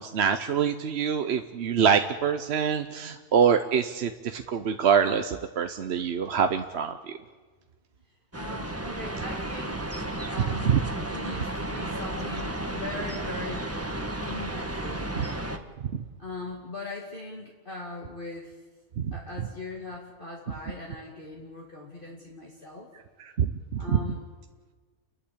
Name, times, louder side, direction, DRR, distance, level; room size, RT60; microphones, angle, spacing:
voice 1, 0.0-7.2 10.7-10.8 15.9-16.0 19.0-19.1 23.4-24.0, right 7 dB, 50° right, 7 dB, 0.9 m, -25 dB
voice 2, 8.3-10.0 10.3-10.8 11.1-15.1 16.2-18.6 19.1-22.9 23.8-24.3, left 2 dB, 35° left, -2 dB, 2.5 m, -40 dB
sound 1, 8.3-15.6, right 1 dB, 10° right, 1.2 m, -33 dB
30.0 x 11.5 x 8.7 m, 1.4 s
omnidirectional pair, 1.6 m